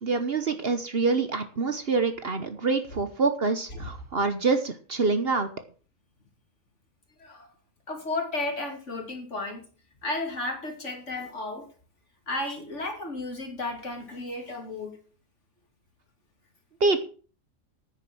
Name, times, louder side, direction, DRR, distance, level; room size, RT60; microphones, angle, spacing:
voice 1, 0.0-5.5 16.8-17.0, right 4 dB, 45° right, 9 dB, 1.2 m, -26 dB
voice 2, 7.9-9.7 10.0-11.7 12.3-15.0, left 2 dB, 55° left, 3 dB, 3.1 m, -33 dB
9.7 x 9.4 x 6.2 m, 0.39 s
omnidirectional pair, 1.5 m